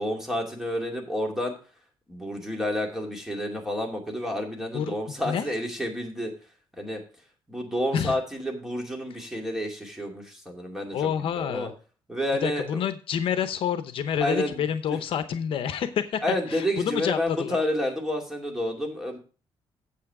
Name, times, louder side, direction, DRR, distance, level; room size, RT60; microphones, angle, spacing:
voice 1, 0.0-1.5 2.1-6.3 6.8-7.0 7.5-11.1 11.4-11.7 12.1-12.8 14.2-14.6 16.2-19.2, left 1 dB, 5° right, 1 dB, 2.4 m, -29 dB
voice 2, 10.9-11.7 12.4-16.2 16.5-17.6, left 8 dB, 70° left, 11 dB, 0.8 m, -28 dB
8.5 x 7.7 x 4.8 m, 0.35 s
cardioid pair, 135°, 10 cm